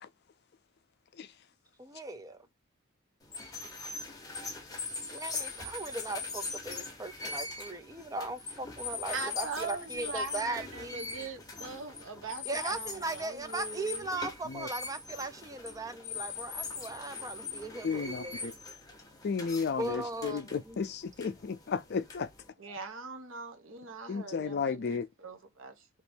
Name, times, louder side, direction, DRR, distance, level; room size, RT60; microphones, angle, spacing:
voice 1, 1.8-2.4 5.1-11.3 12.4-18.5 19.8-20.8, right 2 dB, 15° right, 0.4 m, -38 dB
sound 1, 3.2-22.5, left 4 dB, 15° left, 0.7 m, -41 dB
voice 2, 9.1-14.1 22.6-25.8, right 4 dB, 65° right, 0.9 m, -41 dB
voice 3, 17.8-18.5 19.2-22.3 24.1-25.1, left 5 dB, 50° left, 0.4 m, -33 dB
2.9 x 2.6 x 3.3 m
head